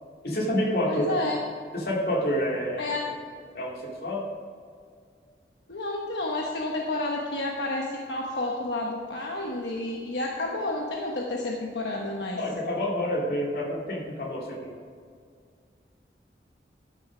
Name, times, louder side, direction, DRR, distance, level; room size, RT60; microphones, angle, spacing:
voice 1, 0.2-1.2 1.7-2.9 3.5-4.3 12.4-14.8, equal, 55° left, -2 dB, 2.5 m, -28 dB
voice 2, 0.8-1.4 2.8-3.0 5.7-12.4, left 2 dB, 80° left, -1 dB, 1.1 m, -30 dB
12.5 x 6.7 x 5.0 m, 2.1 s
head